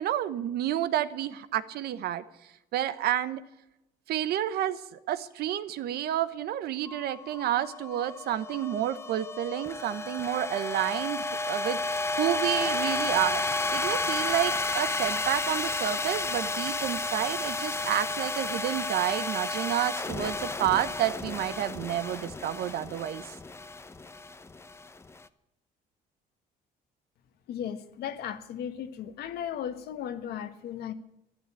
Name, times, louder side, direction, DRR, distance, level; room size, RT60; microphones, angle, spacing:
voice 1, 0.0-2.2 2.7-3.4 4.1-11.8 12.2-13.4 13.7-23.2, right 12 dB, 70° right, 13 dB, 1.0 m, -30 dB
sound 1, 6.9-25.2, left 3 dB, 15° left, 0.7 m, -32 dB
voice 2, 27.5-30.9, left 9 dB, 70° left, 9 dB, 1.4 m, -36 dB
12.0 x 11.0 x 8.9 m, 0.90 s
cardioid pair, 110°, 17 cm